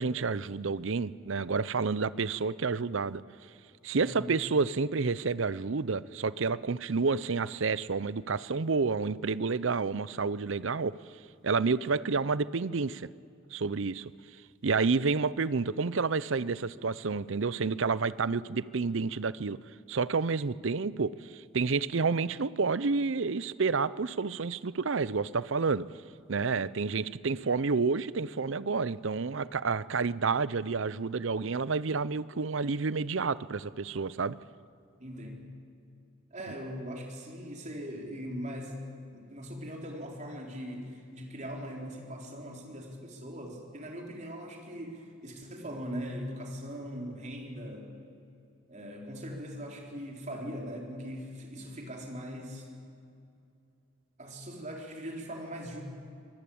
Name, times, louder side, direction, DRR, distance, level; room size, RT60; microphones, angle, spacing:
voice 1, 0.0-3.2 3.8-11.0 11.4-13.1 13.5-14.1 14.6-19.6 19.9-25.9 26.3-34.4, right 4 dB, 70° right, 19 dB, 0.6 m, -29 dB
voice 2, 4.0-4.4 35.0-35.5 36.3-38.8 39.1-47.9 48.7-52.7 54.2-55.8, equal, 35° right, 1 dB, 3.8 m, -40 dB
24.5 x 20.0 x 8.7 m, 2.5 s
head